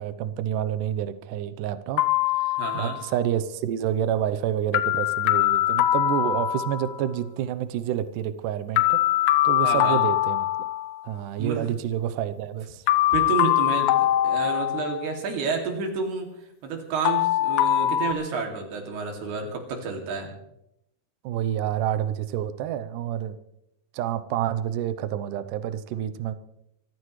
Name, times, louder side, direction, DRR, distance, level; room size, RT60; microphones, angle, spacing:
voice 1, 0.0-2.1 2.3-9.0 9.4-10.7 11.0-12.8 21.2-23.4 23.9-26.3, right 10 dB, 90° right, 11 dB, 1.8 m, -28 dB
sound 1, 2.0-3.1 4.7-7.1 8.8-11.1 12.9-15.2 17.0-18.1, left 14 dB, 80° left, 2.5 m, -23 dB
voice 2, 2.6-3.0 9.6-10.0 11.4-11.7 13.1-16.3 16.6-20.3, right 5 dB, 70° right, 2 dB, 4.5 m, -30 dB
25.5 x 15.0 x 3.2 m, 0.82 s
omnidirectional pair, 4.8 m